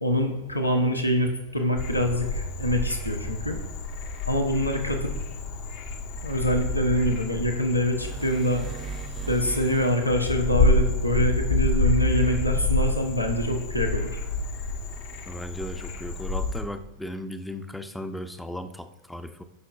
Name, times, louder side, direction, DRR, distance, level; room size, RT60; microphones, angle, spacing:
voice 1, 0.0-3.6 4.3-5.1 6.2-8.6 9.3-14.2, equal, 85° left, 3 dB, 1.1 m, -25 dB
Frog, 1.8-16.6, left 2 dB, 50° left, 1.0 m, -28 dB
sound 1, 7.9-10.3, right 7 dB, 30° right, 0.4 m, -38 dB
voice 2, 15.3-19.4, equal, 5° left, 8 dB, 0.7 m, -36 dB
16.5 x 5.8 x 2.5 m, 1.1 s
figure-of-eight pair, 90°, 0 cm